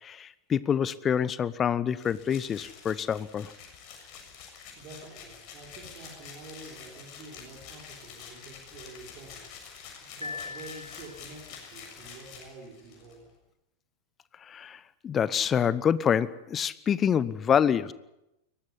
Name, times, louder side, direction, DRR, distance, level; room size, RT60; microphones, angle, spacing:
voice 1, 0.0-3.5 14.4-17.9, left 8 dB, 25° left, 17 dB, 1.0 m, -27 dB
sound 1, 2.0-13.1, left 6 dB, 40° left, 7.1 m, -47 dB
voice 2, 4.8-13.3, right 3 dB, 40° right, -2 dB, 5.8 m, -48 dB
Piano, 10.2-11.5, left 4 dB, 85° left, 1.5 m, -40 dB
22.5 x 19.0 x 8.4 m, 0.92 s
figure-of-eight pair, 90°, 0 cm